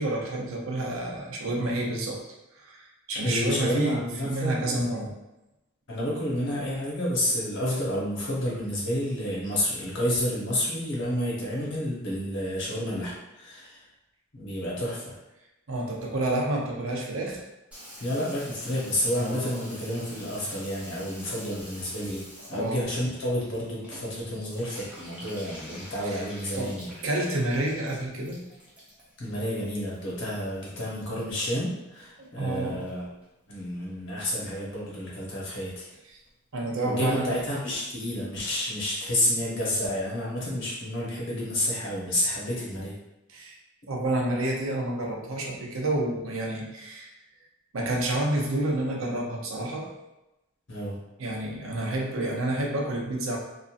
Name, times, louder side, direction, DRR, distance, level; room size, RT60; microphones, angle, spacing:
voice 1, 0.0-2.2 2.6-5.1 15.7-17.4 22.5-22.9 26.1-26.2 26.5-26.8 27.0-28.5 29.8-29.9 32.2-32.8 36.1-36.2 36.5-37.4 43.3-43.6 43.9-47.1 47.7-49.9 51.2-53.4, right 1 dB, 75° right, -1 dB, 0.6 m, -29 dB
voice 2, 3.2-5.1 5.9-13.9 14.3-15.1 18.0-26.9 29.2-33.1 33.5-35.9 36.8-42.9 50.7-51.0, left 1 dB, 60° left, -5 dB, 1.0 m, -30 dB
Water tap faucet / Bathtub (filling or washing), 17.7-32.3 32.5-33.3 33.6-33.7 33.9-34.0 34.2-34.6 34.9-35.0 35.2-35.3 35.5-35.6 35.9-36.0 36.2-36.3 36.6-36.7 37.0-37.1 37.4-37.5, equal, 5° right, 0.6 m, -46 dB
2.9 x 2.5 x 2.4 m, 0.95 s
head